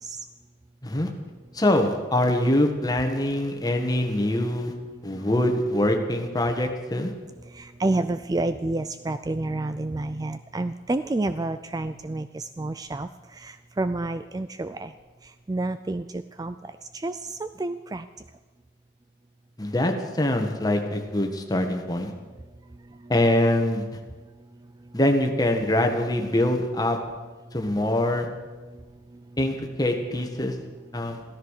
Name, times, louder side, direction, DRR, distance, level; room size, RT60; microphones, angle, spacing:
voice 1, 1.5-4.7 5.0-7.1 19.6-22.1 23.1-23.9 24.9-27.0 27.5-28.3 29.4-30.5 30.9-31.2, left 1 dB, 20° left, 4 dB, 1.6 m, -24 dB
voice 2, 7.5-13.1 13.4-14.9 15.5-16.6 16.9-18.0, right 2 dB, 20° right, 11 dB, 0.4 m, -29 dB
15.0 x 13.5 x 6.6 m, 1.3 s
head